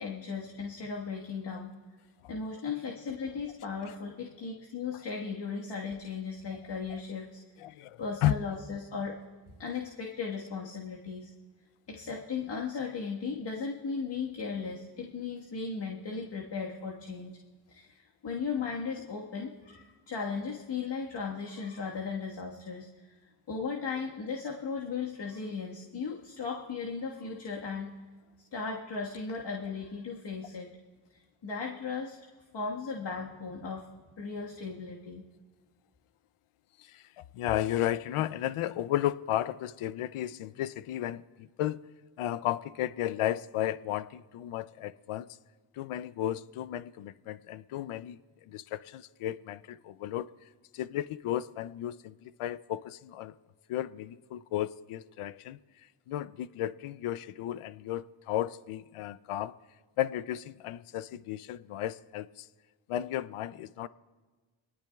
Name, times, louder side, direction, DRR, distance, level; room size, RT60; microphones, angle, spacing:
voice 1, 0.0-1.7 2.3-7.4 8.0-9.1 9.6-11.3 11.9-17.4 17.7-23.1 23.5-27.9 28.5-30.7 31.1-32.2 32.5-33.9 34.2-35.2, left 5 dB, 55° left, -1 dB, 1.6 m, -36 dB
voice 2, 7.6-8.3 36.8-41.8 42.2-45.3 45.7-50.3 50.7-53.3 53.7-55.6 56.1-59.5 60.0-62.5 62.9-63.9, left 12 dB, 85° left, 16 dB, 0.6 m, -34 dB
23.5 x 19.0 x 2.3 m, 1.3 s
cardioid pair, 65°, 49 cm